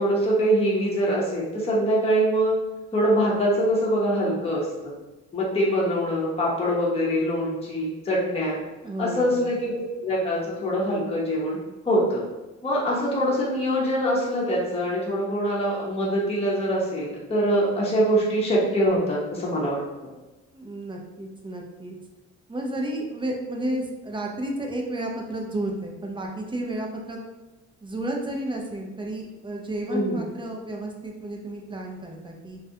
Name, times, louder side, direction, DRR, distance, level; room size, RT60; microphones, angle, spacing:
voice 1, 0.0-2.5 2.9-4.9 5.3-8.6 9.0-11.6 11.8-12.2 12.6-19.8 29.9-30.2, equal, 20° left, -5 dB, 0.7 m, -24 dB
voice 2, 8.8-9.5 20.5-22.0 22.5-27.2 27.8-32.6, right 1 dB, 15° right, 1 dB, 0.4 m, -32 dB
2.3 x 2.1 x 2.7 m, 1.1 s
cardioid pair, 90°, 30 cm